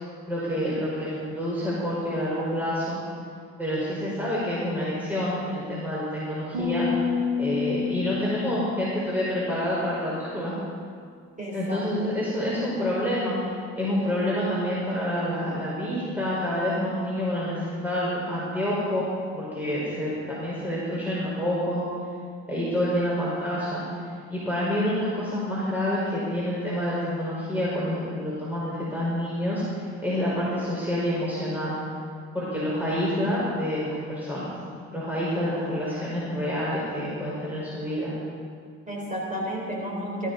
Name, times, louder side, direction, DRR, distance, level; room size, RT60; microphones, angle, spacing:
voice 1, 0.3-3.0 3.6-6.9 7.4-10.5 11.5-13.3 13.8-19.0 19.3-21.8 22.5-23.8 24.3-31.8 32.3-34.5 34.9-38.1, equal, 5° right, -8 dB, 4.9 m, -28 dB
sound 1, 6.5-10.0, left 6 dB, 90° right, 3.3 m, -29 dB
voice 2, 11.4-12.2 38.9-40.3, equal, 25° right, -2 dB, 4.0 m, -32 dB
19.0 x 14.0 x 4.1 m, 2.1 s
cardioid pair, 90°, 30 cm